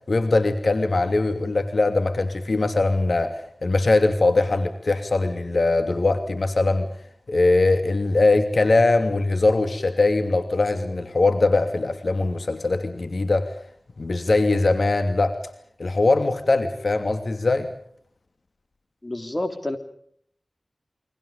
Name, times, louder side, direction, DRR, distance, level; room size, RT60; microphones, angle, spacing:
voice 1, 0.1-6.9 7.3-13.5 14.0-15.3 15.8-17.7, left 2 dB, 65° left, 7 dB, 2.8 m, -21 dB
voice 2, 19.0-19.8, left 1 dB, 30° left, 7 dB, 3.6 m, -28 dB
29.5 x 24.0 x 5.1 m, 0.64 s
wide cardioid pair, 60°, 0 cm